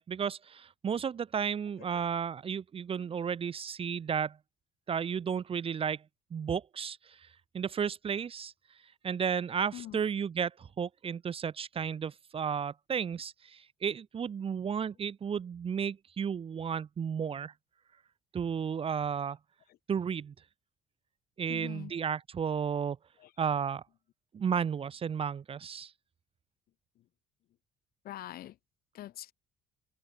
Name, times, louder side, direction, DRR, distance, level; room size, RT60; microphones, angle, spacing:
voice 1, 0.0-4.4 4.9-6.0 6.3-7.2 7.5-8.5 9.0-17.5 18.3-19.4 19.9-20.3 21.4-23.0 23.4-23.8 24.3-25.9, right 7 dB, 35° right, 0.8 m, -33 dB
voice 2, 21.5-21.9 23.2-23.3 27.0-27.1 28.0-28.6 28.9-29.3, left 14 dB, 60° left, 0.8 m, -44 dB
cardioid pair, 110°, 17 cm